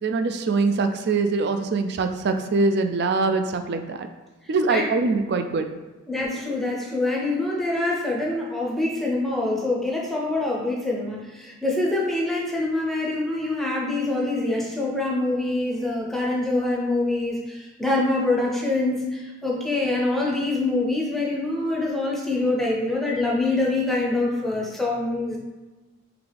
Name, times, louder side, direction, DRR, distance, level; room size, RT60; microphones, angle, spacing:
voice 1, 0.0-4.1 4.5-5.7, right 3 dB, 50° right, 7 dB, 0.3 m, -23 dB
voice 2, 6.1-25.4, left 2 dB, ahead, -3 dB, 0.6 m, -25 dB
3.9 x 3.3 x 3.4 m, 1.2 s
head